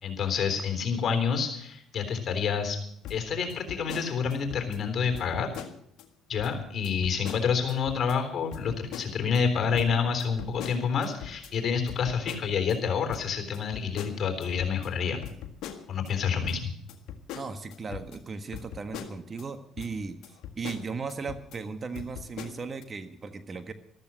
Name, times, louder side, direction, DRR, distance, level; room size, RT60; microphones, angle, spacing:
voice 1, 0.0-2.8 3.1-5.5 6.3-15.2 15.9-16.8, left 6 dB, 50° left, 7 dB, 3.7 m, -28 dB
sound 1, 3.0-4.8 5.1-6.0 6.4-6.5 6.8-8.2 8.5-9.4 9.7-12.8 13.1-16.1 16.4-19.5 19.8-19.9 20.2-21.6 21.9-22.8, left 9 dB, 70° left, 1.7 m, -42 dB
voice 2, 17.3-23.7, right 4 dB, 35° right, 9 dB, 1.5 m, -37 dB
14.0 x 13.5 x 6.3 m, 0.69 s
supercardioid pair, 70°, 0 cm